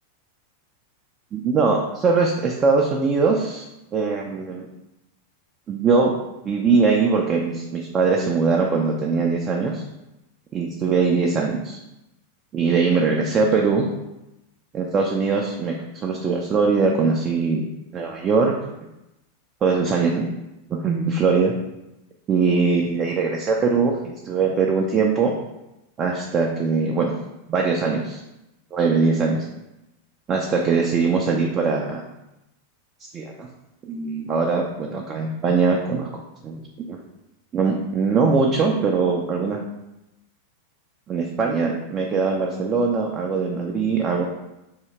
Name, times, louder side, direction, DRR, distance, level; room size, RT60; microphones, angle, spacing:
voice 1, 1.3-3.6 3.9-4.7 5.7-6.1 6.4-9.8 10.5-11.8 12.5-13.9 14.7-17.7 17.9-18.5 19.6-20.2 20.7-21.5 22.3-25.3 26.0-27.1 27.5-28.2 28.7-29.5 30.3-32.0 33.1-33.5 33.8-36.1 36.4-37.0 37.5-39.6 41.1-44.2, right 4 dB, 25° right, 0 dB, 0.4 m, -21 dB
2.8 x 2.7 x 4.4 m, 0.91 s
figure-of-eight pair, 90°, 0 cm